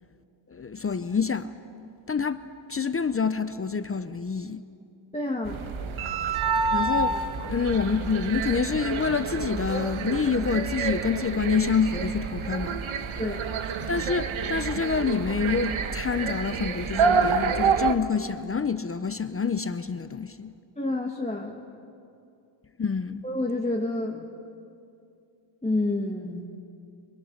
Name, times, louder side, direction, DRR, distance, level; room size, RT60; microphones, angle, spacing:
voice 1, 0.5-1.5 2.1-4.6 6.7-7.2 7.4-12.8 13.9-20.5 22.8-23.2, left 5 dB, 30° left, 0.6 m, -27 dB
voice 2, 5.1-5.6 13.2-13.4 20.8-21.6 23.2-24.3 25.6-26.5, left 2 dB, 15° left, 1.3 m, -29 dB
sound 1, 5.4-17.9, right 5 dB, 90° right, 1.2 m, -28 dB
24.5 x 23.0 x 6.5 m
wide cardioid pair, 145°, 47 cm